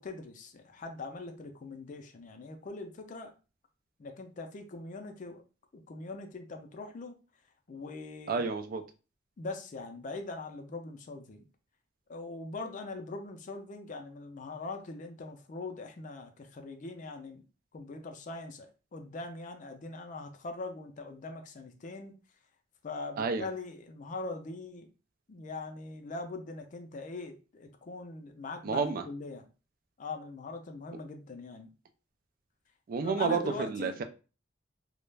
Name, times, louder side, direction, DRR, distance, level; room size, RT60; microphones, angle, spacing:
voice 1, 0.0-3.3 4.0-5.4 5.7-7.1 7.7-8.5 9.4-11.4 12.1-17.5 17.7-22.2 22.8-24.9 25.3-29.4 30.0-31.7 33.0-34.0, left 3 dB, 40° left, 6 dB, 0.4 m, -42 dB
voice 2, 8.3-8.8 23.2-23.5 28.6-29.0 32.9-34.0, right 4 dB, 50° right, 7 dB, 0.3 m, -30 dB
2.3 x 2.1 x 3.2 m, 0.33 s
head